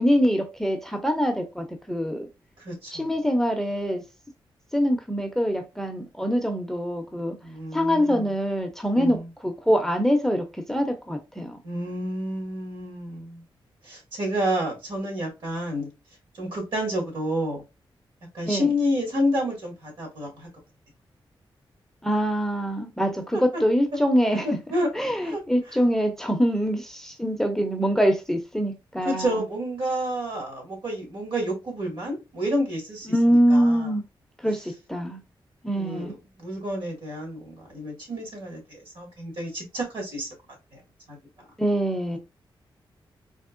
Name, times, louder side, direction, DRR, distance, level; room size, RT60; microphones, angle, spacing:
voice 1, 0.0-2.3 2.9-4.0 4.7-7.4 7.7-9.2 9.4-11.6 18.5-18.7 22.0-24.5 24.9-29.4 33.1-34.0 34.4-35.2 35.6-36.1 41.6-42.2, equal, 5° left, 0.5 m, -24 dB
voice 2, 2.6-3.1 7.4-8.3 8.9-9.3 11.6-13.4 13.8-15.9 16.4-17.6 18.3-20.5 23.3-23.6 24.4-24.9 25.2-25.4 29.0-33.9 35.7-40.3 40.7-40.8 41.1-41.2, equal, 75° right, 1.9 m, -29 dB
3.6 x 2.9 x 2.4 m
wide cardioid pair, 140°, 9 cm